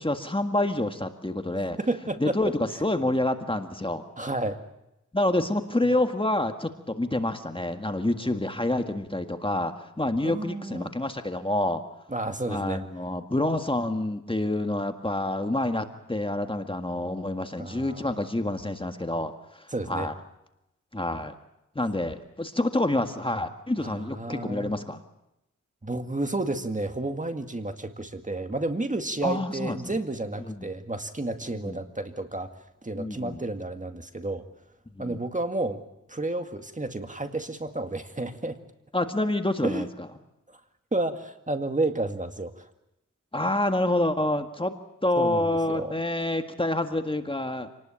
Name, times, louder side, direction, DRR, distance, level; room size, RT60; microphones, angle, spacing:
voice 1, 0.0-1.8 2.2-4.0 5.1-11.8 12.5-20.1 20.9-21.3 21.8-25.0 29.2-29.8 30.5-30.7 31.5-31.8 33.0-33.4 35.0-35.2 38.9-39.9 43.3-44.7 45.0-47.7, left 1 dB, 15° left, 6 dB, 1.8 m, -27 dB
voice 2, 1.8-2.5 4.2-4.6 5.8-5.9 10.2-10.9 12.1-12.8 17.6-18.0 19.7-20.1 23.8-24.7 25.8-32.5 32.8-34.5 35.0-35.8 36.1-38.6 39.6-39.8 40.9-42.7 45.2-45.9, right 2 dB, 25° right, 7 dB, 2.0 m, -31 dB
27.5 x 19.5 x 8.8 m, 0.89 s
wide cardioid pair, 75°, 31 cm